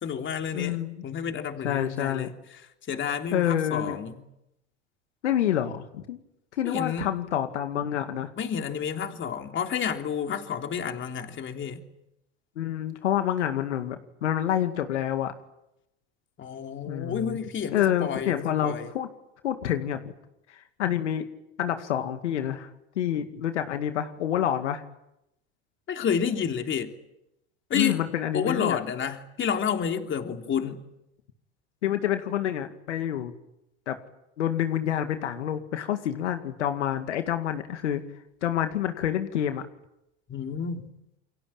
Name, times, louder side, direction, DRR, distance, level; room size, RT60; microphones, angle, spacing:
voice 1, 0.0-0.8 1.0-2.3 2.9-4.2 6.7-7.1 8.4-11.8 16.4-18.9 25.9-26.9 27.7-28.0 28.3-30.8 40.3-40.9, left 7 dB, 35° left, 5 dB, 3.4 m, -30 dB
voice 2, 0.5-1.0 1.6-2.3 3.3-4.0 5.2-6.2 6.6-8.3 12.6-15.3 16.9-17.4 17.7-19.1 19.4-20.0 20.5-21.3 21.6-22.7 23.0-24.8 27.7-28.8 31.8-33.3 33.9-34.0 34.4-38.0 38.4-39.6, left 10 dB, 90° left, 7 dB, 2.2 m, -28 dB
28.5 x 23.0 x 8.9 m, 0.84 s
hypercardioid pair, 100°, 34 cm